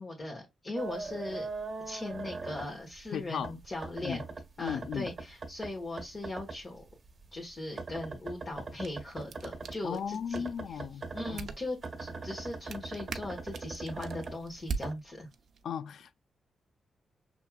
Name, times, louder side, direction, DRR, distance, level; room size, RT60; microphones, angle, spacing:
voice 1, 0.0-1.5 1.8-4.2 4.6-6.8 7.3-10.8 11.1-15.3, left 2 dB, 35° left, 1.5 m, -39 dB
sound 1, 0.8-3.1 3.4-6.6 6.9-9.8 10.3-14.9, right 3 dB, 40° right, 1.1 m, -41 dB
voice 2, 3.1-3.5 4.0-4.2 4.6-5.1 9.8-11.5 15.6-16.2, left 8 dB, 80° left, 0.4 m, -36 dB
sound 2, 8.5-15.6, right 5 dB, 70° right, 0.7 m, -44 dB
5.8 x 3.4 x 2.3 m
cardioid pair, 90°, 0 cm